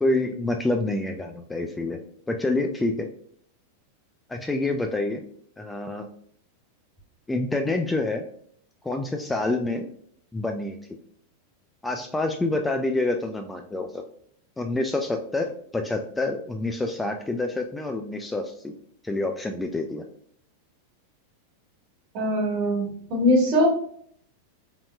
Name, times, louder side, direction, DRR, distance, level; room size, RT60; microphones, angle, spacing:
voice 1, 0.0-2.0 2.3-3.1 4.3-5.2 5.6-6.1 7.3-8.3 8.8-9.9 10.3-10.8 11.8-14.0 14.6-18.7 19.0-20.0, left 2 dB, 10° left, 4 dB, 0.3 m, -27 dB
voice 2, 22.1-23.7, equal, 40° right, -1 dB, 1.4 m, -22 dB
3.7 x 3.6 x 2.3 m, 0.62 s
figure-of-eight pair, 90°, 0 cm